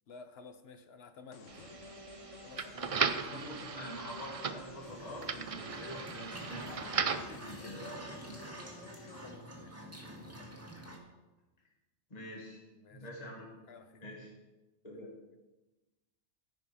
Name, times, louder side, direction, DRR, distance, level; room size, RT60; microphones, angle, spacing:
voice 1, 0.1-1.4 2.4-3.6 9.1-10.5 12.8-13.0 13.7-14.0, left 4 dB, 55° left, 8 dB, 1.0 m, -53 dB
sound 1, 1.3-9.3, left 3 dB, 75° left, 1.5 m, -52 dB
sound 2, 1.5-7.4, right 6 dB, 55° right, 0.4 m, -37 dB
voice 2, 3.3-8.5 12.1-12.6 12.9-13.5 14.0-14.3 14.8-15.1, equal, 30° left, -2 dB, 1.8 m, -46 dB
sound 3, 4.8-11.0, right 1 dB, 10° right, 1.7 m, -48 dB
14.0 x 5.5 x 5.5 m, 1.1 s
omnidirectional pair, 1.3 m